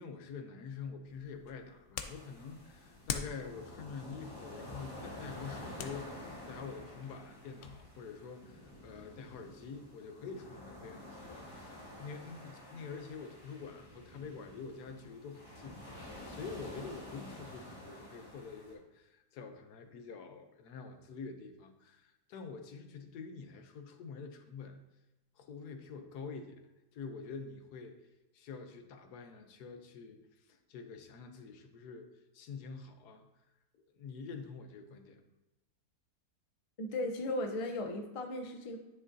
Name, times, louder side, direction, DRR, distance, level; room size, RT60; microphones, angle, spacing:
voice 1, 0.0-24.8 25.4-26.6 26.9-28.0 28.3-32.1 32.3-33.3 33.7-35.2, left 5 dB, 85° left, 6 dB, 1.3 m, -46 dB
sound 1, 1.1-7.8, left 7 dB, 65° left, 0.8 m, -46 dB
sound 2, 2.0-18.7, left 1 dB, 20° left, 2.7 m, -50 dB
voice 2, 36.8-38.8, left 1 dB, 40° left, 4 dB, 0.5 m, -36 dB
9.9 x 6.0 x 2.7 m, 0.98 s
omnidirectional pair, 1.7 m